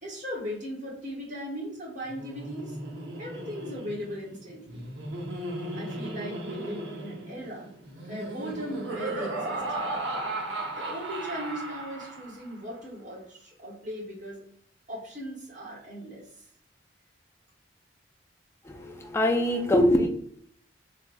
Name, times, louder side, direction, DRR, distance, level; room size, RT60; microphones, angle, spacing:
voice 1, 0.0-2.8 3.2-4.9 5.7-7.7 8.1-9.6 10.8-14.4 14.9-16.2, equal, 40° right, -4 dB, 1.2 m, -38 dB
Laughter, 2.0-12.5, right 2 dB, 65° right, 0.6 m, -36 dB
voice 2, 18.6-20.1, left 1 dB, 15° left, 3 dB, 0.3 m, -23 dB
3.2 x 2.3 x 2.5 m, 0.63 s
head